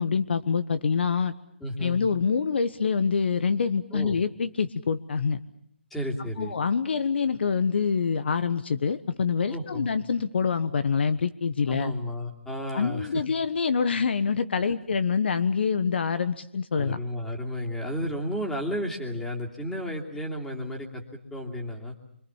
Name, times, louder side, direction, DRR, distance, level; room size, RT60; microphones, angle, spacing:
voice 1, 0.0-1.3 1.8-5.4 6.4-11.9 12.7-17.0, left 5 dB, 60° left, 13 dB, 1.3 m, -26 dB
voice 2, 1.6-2.0 3.9-4.2 5.9-6.6 9.5-9.9 11.7-13.2 16.8-21.9, equal, 5° left, -1 dB, 2.9 m, -32 dB
26.0 x 25.5 x 7.3 m, 0.69 s
hypercardioid pair, 150°, 6 cm